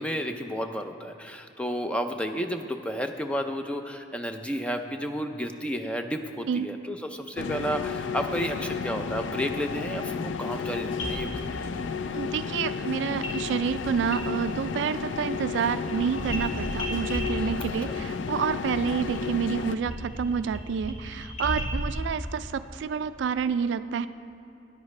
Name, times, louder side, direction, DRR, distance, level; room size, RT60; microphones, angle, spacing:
voice 1, 0.0-11.3 17.3-17.6 17.9-18.0, equal, 5° left, 6 dB, 0.4 m, -32 dB
sound 1, 7.4-19.8, left 5 dB, 85° left, 0.4 m, -32 dB
sound 2, 11.0-11.9 13.2-13.4 13.7-14.7 15.0-22.0, equal, 45° left, 1.9 m, -36 dB
voice 2, 12.1-24.1, right 6 dB, 75° right, 13 dB, 0.3 m, -29 dB
13.0 x 10.0 x 3.2 m, 2.8 s
head